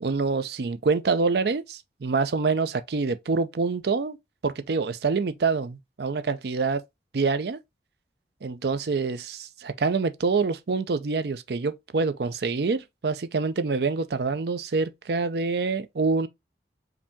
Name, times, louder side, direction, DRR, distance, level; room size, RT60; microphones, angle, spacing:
voice 1, 0.0-4.2 4.4-6.8 7.1-7.6 8.4-16.3, right 4 dB, 65° right, 0.5 m, -26 dB
4.9 x 2.8 x 3.5 m
head